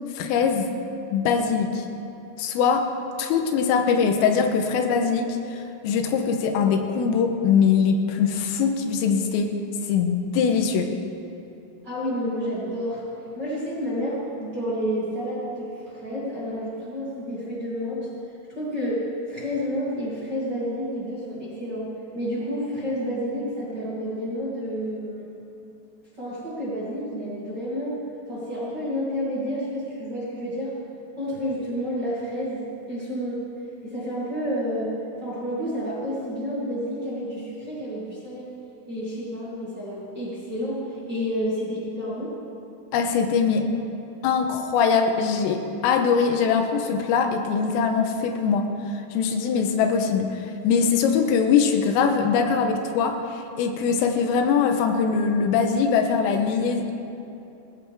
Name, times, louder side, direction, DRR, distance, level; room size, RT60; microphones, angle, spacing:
voice 1, 0.2-0.7 1.1-1.9 2.4-2.9 3.2-9.5 9.9-10.9 42.9-43.7 44.2-48.7 49.1-56.9, left 6 dB, 90° left, 5 dB, 3.6 m, -22 dB
voice 2, 11.8-13.0 13.4-18.1 18.5-25.3 26.2-28.0 28.3-30.7 31.2-33.4 33.8-34.9 35.2-38.5 38.9-42.3, equal, 25° right, -9 dB, 2.6 m, -30 dB
19.5 x 16.0 x 3.6 m, 2.8 s
omnidirectional pair, 5.9 m